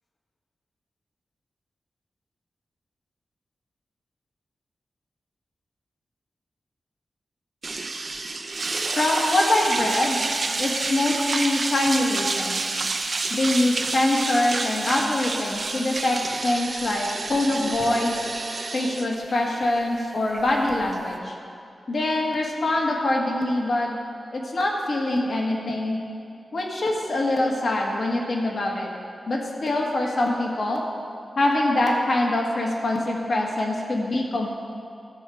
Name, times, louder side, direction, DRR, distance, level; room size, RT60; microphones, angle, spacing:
sound 1, 7.6-21.2, right 3 dB, 55° right, 0.8 m, -29 dB
voice 1, 9.0-10.2 10.6-12.6 13.3-18.1 18.7-21.3 21.9-23.9 24.3-26.0 26.5-28.9 29.3-30.8 31.4-34.5, left 1 dB, 60° left, -1 dB, 1.6 m, -24 dB
14.0 x 6.6 x 4.9 m, 2.4 s
wide cardioid pair, 75°, 0 cm